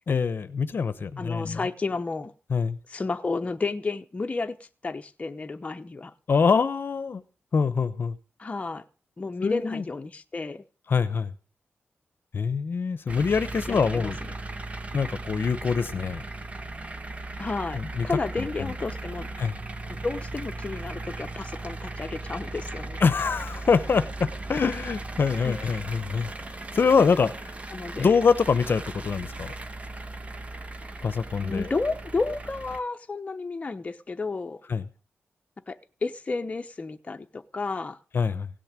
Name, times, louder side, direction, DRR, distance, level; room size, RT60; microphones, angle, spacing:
voice 1, 0.1-1.6 2.5-2.8 6.3-7.2 7.5-8.2 9.4-9.8 10.9-11.3 12.3-14.2 14.9-16.2 17.7-18.1 18.4-18.7 19.4-19.6 23.0-26.3 26.7-27.6 28.0-29.5 31.0-31.7 34.7-34.9 38.1-38.5, left 5 dB, 55° left, 0.9 m, -24 dB
voice 2, 1.2-2.3 2.9-6.1 8.4-8.8 9.2-10.6 13.7-14.3 17.4-19.3 20.0-23.0 25.4-25.5 27.7-28.1 31.4-34.6 35.7-38.0, left 3 dB, 30° left, 0.9 m, -32 dB
sound 1, 13.1-32.8, right 2 dB, 30° right, 1.3 m, -37 dB
17.0 x 6.5 x 8.9 m
wide cardioid pair, 135°, 4 cm